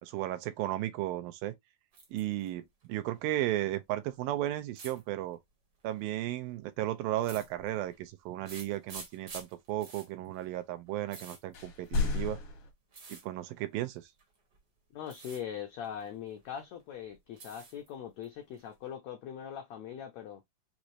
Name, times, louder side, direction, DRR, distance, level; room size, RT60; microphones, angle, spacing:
voice 1, 0.0-1.5 2.1-5.4 5.8-12.4 13.1-14.0, right 14 dB, 85° right, 2.4 m, -34 dB
sound 1, 1.9-2.5 2.8-3.5 4.7-5.0 5.9-6.2 7.2-8.0 8.4-12.3 12.9-13.3 14.2-14.6 15.0-15.4 15.8-16.6 16.9-17.9 18.2-18.9, right 3 dB, 55° right, 1.1 m, -49 dB
sound 2, 11.5-12.7, left 3 dB, 70° left, 1.3 m, -32 dB
voice 2, 14.9-20.4, left 9 dB, 90° left, 1.5 m, -41 dB
6.0 x 2.7 x 3.0 m
omnidirectional pair, 4.1 m